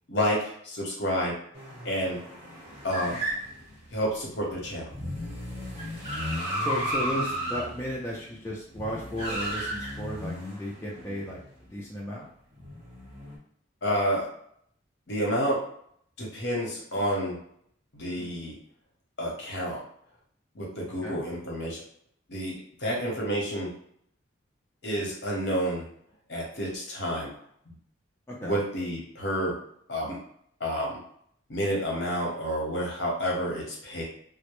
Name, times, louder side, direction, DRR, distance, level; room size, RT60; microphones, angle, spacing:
voice 1, 0.1-1.4 1.8-2.2 2.8-3.2 3.9-4.9 13.8-14.3 15.1-15.6 16.2-17.4 17.9-18.5 19.2-19.8 20.5-21.8 22.3-23.7 24.8-25.8 26.3-27.3 27.7-27.8 28.4-29.6 29.9-30.2 30.6-31.0 31.5-34.0, equal, 60° left, -3 dB, 0.9 m, -29 dB
sound 1, 1.5-11.5 12.6-13.4, equal, 30° right, 0.8 m, -34 dB
voice 2, 6.6-11.4 11.7-12.2 21.0-21.2 28.3-28.6, equal, 15° left, -5 dB, 0.4 m, -34 dB
2.1 x 2.0 x 2.9 m, 0.64 s
head